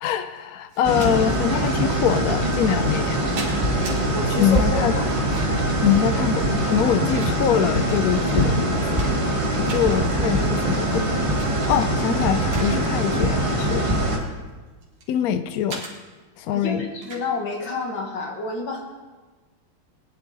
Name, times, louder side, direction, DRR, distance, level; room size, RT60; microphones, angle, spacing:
voice 1, 0.0-3.2 4.4-4.9 5.8-9.2 9.6-11.1 11.7-13.9 15.1-15.8 16.4-16.9, left 9 dB, 90° left, 11 dB, 0.7 m, -23 dB
sound 1, 0.7-1.1 2.1-2.2 2.9-4.0 5.1-5.7 6.7-7.7 8.3-8.4 8.7-9.4 9.7-9.9 11.2-11.5 11.9-12.7 13.0-13.3 14.0-15.1 15.7-15.9 17.0-17.3, right 3 dB, 80° right, 2.7 m, -38 dB
sound 2, 0.8-14.2, right 1 dB, 20° right, 1.2 m, -23 dB
voice 2, 4.0-5.1 16.5-18.8, left 3 dB, 65° left, 1 dB, 2.5 m, -29 dB
20.0 x 10.0 x 4.0 m, 1.3 s
omnidirectional pair, 2.3 m